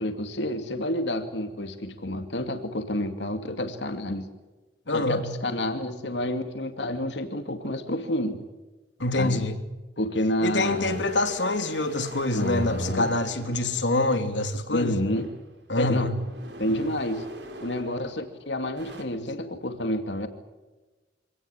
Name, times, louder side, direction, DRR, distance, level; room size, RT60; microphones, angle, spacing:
voice 1, 0.0-4.3 4.9-8.4 9.2-9.4 10.0-11.0 12.3-13.1 13.5-13.6 14.7-15.3 15.8-16.1 16.6-17.2 17.6-20.3, left 1 dB, 75° left, 7 dB, 2.5 m, -29 dB
voice 2, 4.9-5.2 9.0-9.6 10.4-15.0 15.7-16.2, left 2 dB, 90° left, 7 dB, 3.1 m, -25 dB
sound 1, 10.6-14.4 15.0-18.3 18.6-19.0, equal, 70° right, 5.5 m, -42 dB
26.5 x 18.5 x 8.9 m, 1.2 s
head